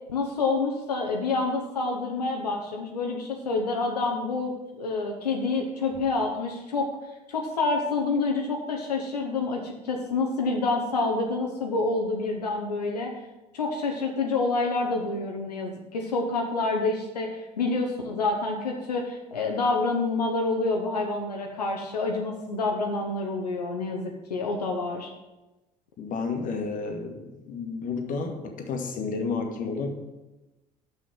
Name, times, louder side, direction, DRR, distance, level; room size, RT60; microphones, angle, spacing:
voice 1, 0.1-6.9 7.3-13.1 13.5-25.1, left 3 dB, 75° left, 1 dB, 0.9 m, -28 dB
voice 2, 26.0-29.9, left 4 dB, 40° left, 4 dB, 1.5 m, -31 dB
6.9 x 6.3 x 7.7 m, 1.0 s
figure-of-eight pair, 60°, 20 cm